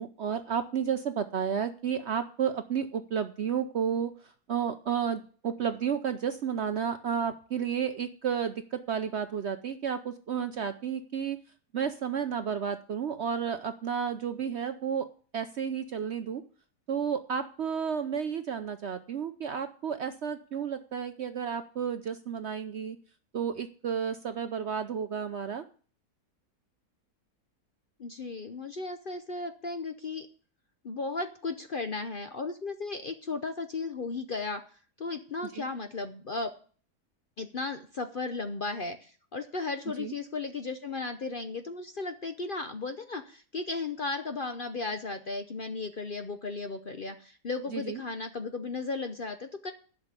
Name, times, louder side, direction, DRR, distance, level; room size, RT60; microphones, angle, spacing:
voice 1, 0.0-11.4 11.7-15.1 15.3-16.4 16.9-23.0 23.3-25.6 35.5-35.6 40.0-40.1 47.7-48.0, right 7 dB, 60° right, 9 dB, 0.7 m, -32 dB
voice 2, 28.0-30.3 30.8-34.6 35.0-36.5 37.4-49.7, left 3 dB, 45° left, 8 dB, 0.7 m, -35 dB
11.5 x 5.9 x 8.1 m, 0.42 s
omnidirectional pair, 1.7 m